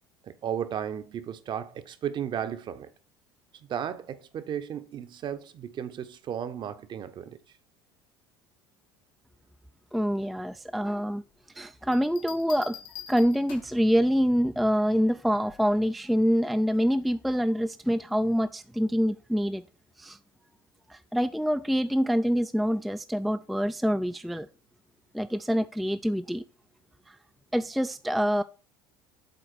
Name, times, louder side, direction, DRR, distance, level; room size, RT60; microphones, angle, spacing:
voice 1, 0.2-2.9 3.7-7.4, right 9 dB, 40° right, 0.8 m, -34 dB
voice 2, 9.9-11.2 11.6-12.8 13.1-19.6 20.0-20.2 20.9-24.5 25.1-26.4 27.1-27.2 27.5-28.4, equal, ahead, 0.3 m, -26 dB
sound 1, 11.9-13.9 15.5-15.8, left 10 dB, 65° left, 1.6 m, -45 dB
7.9 x 3.9 x 4.5 m
figure-of-eight pair, 65°, 12 cm